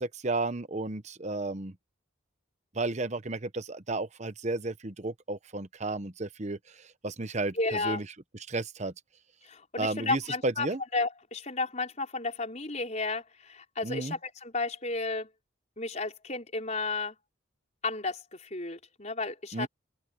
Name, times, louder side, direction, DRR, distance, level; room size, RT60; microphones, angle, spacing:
voice 1, 0.0-1.7 2.7-6.6 7.0-7.5 7.8-8.0 8.5-8.9 9.8-10.8 13.8-14.1 19.5-19.7, right 2 dB, 35° right, 0.9 m, -32 dB
voice 2, 7.5-8.0 9.4-10.7 10.9-15.3 15.8-17.1 17.8-19.7, left 3 dB, 35° left, 4.9 m, -33 dB
open air
head